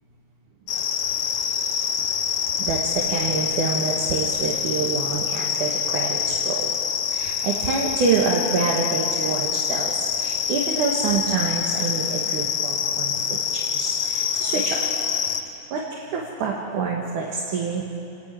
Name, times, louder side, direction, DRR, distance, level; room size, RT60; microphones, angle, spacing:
sound 1, 0.7-15.4, left 8 dB, 75° left, 2.4 m, -26 dB
voice 1, 2.6-6.7 7.1-14.8 15.7-17.8, right 4 dB, 70° right, -3 dB, 3.1 m, -27 dB
28.0 x 13.0 x 9.1 m, 2.9 s
omnidirectional pair, 3.7 m